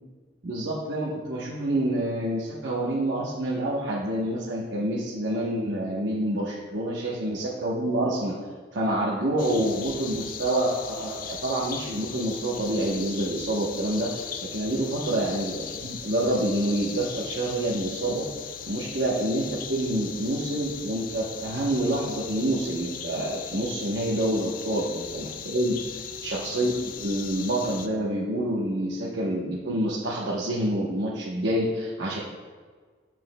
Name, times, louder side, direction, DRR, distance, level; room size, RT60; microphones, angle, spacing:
voice 1, 0.4-8.3 8.7-18.2 18.7-25.8 26.2-32.2, right 1 dB, 70° right, -6 dB, 0.9 m, -27 dB
sound 1, 9.4-27.9, left 7 dB, 45° left, 0.4 m, -38 dB
9.4 x 5.9 x 2.2 m, 1.5 s
head